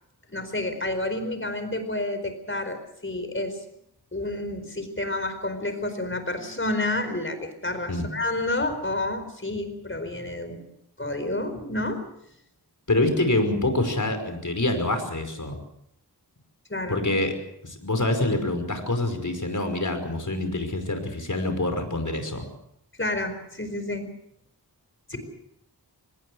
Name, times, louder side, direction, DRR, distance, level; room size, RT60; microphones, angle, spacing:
voice 1, 0.3-3.6 4.1-10.6 11.0-12.0 16.7-17.0 23.0-24.1 25.1-25.2, left 2 dB, 30° left, 8 dB, 4.6 m, -29 dB
voice 2, 12.9-15.6 16.9-17.3 17.6-22.4, left 2 dB, 50° left, 7 dB, 5.4 m, -26 dB
25.0 x 20.5 x 6.4 m, 0.75 s
wide cardioid pair, 65°, 40 cm